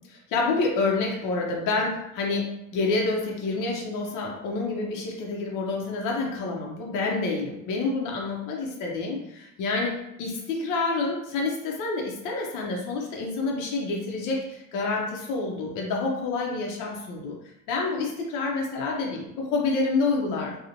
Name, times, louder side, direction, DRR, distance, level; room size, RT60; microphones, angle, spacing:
voice 1, 0.0-17.4 17.7-20.6, left 3 dB, 75° left, -1 dB, 0.6 m, -28 dB
2.9 x 2.1 x 2.5 m, 0.84 s
cardioid pair, 140°, 32 cm